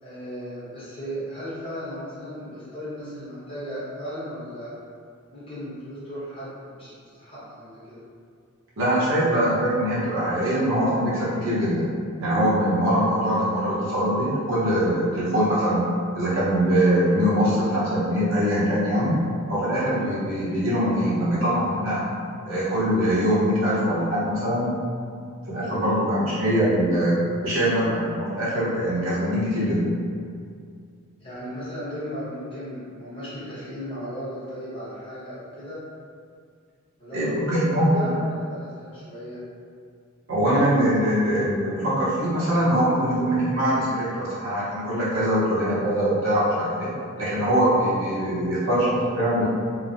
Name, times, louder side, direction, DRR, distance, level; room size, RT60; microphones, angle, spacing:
voice 1, 0.0-4.7 5.3-6.9 7.2-8.0 31.2-35.8 37.0-39.4, equal, 25° left, -12 dB, 1.0 m, -36 dB
voice 2, 8.8-11.8 12.2-15.9 16.1-19.1 19.5-22.1 22.4-24.7 25.5-29.9 37.1-38.1 40.3-46.9 47.2-49.4, equal, 65° right, -10 dB, 0.8 m, -22 dB
3.0 x 2.1 x 2.5 m, 2.2 s
head